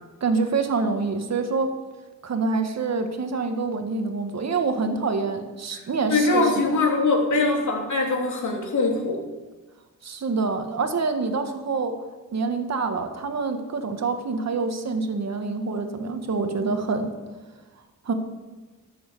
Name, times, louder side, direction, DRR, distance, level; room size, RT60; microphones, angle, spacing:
voice 1, 0.2-1.7 2.2-6.6 10.0-12.0 12.3-17.1 18.1-18.2, right 4 dB, 55° right, 6 dB, 1.8 m, -26 dB
voice 2, 6.1-9.2, left 3 dB, 60° left, 0 dB, 3.2 m, -22 dB
13.5 x 7.8 x 6.9 m, 1.3 s
cardioid pair, 90°, 33 cm